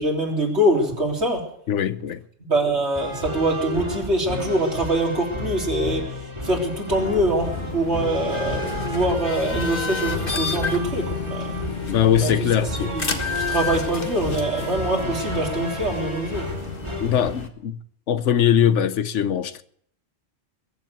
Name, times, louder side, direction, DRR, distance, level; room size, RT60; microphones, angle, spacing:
voice 1, 0.0-1.5 2.4-11.5 12.2-12.5 12.8-13.1 13.5-16.5, right 1 dB, 65° right, 3.6 m, -24 dB
voice 2, 1.7-2.2 11.9-12.9 17.0-17.8 18.1-19.6, left 9 dB, 85° left, 1.1 m, -21 dB
sound 1, 2.9-17.3, left 1 dB, 25° right, 2.6 m, -32 dB
sound 2, 6.9-17.5, left 4 dB, 50° left, 1.6 m, -31 dB
22.0 x 7.5 x 8.1 m
omnidirectional pair, 1.2 m